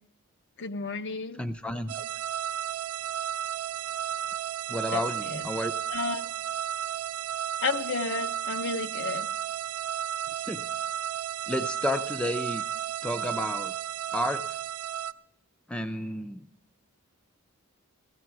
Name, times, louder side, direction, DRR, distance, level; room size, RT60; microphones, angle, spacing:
voice 1, 0.6-1.4 4.9-5.4 5.9-6.3 7.6-9.3, left 4 dB, 50° left, 9 dB, 0.7 m, -32 dB
voice 2, 1.4-2.0 4.7-5.7 10.4-10.6 11.5-12.6 13.0-13.7 14.1-14.4 15.7-16.4, left 1 dB, 5° left, 9 dB, 0.5 m, -31 dB
sound 1, 1.9-15.1, right 10 dB, 85° right, 0.5 m, -33 dB
16.5 x 14.0 x 4.7 m, 0.70 s
head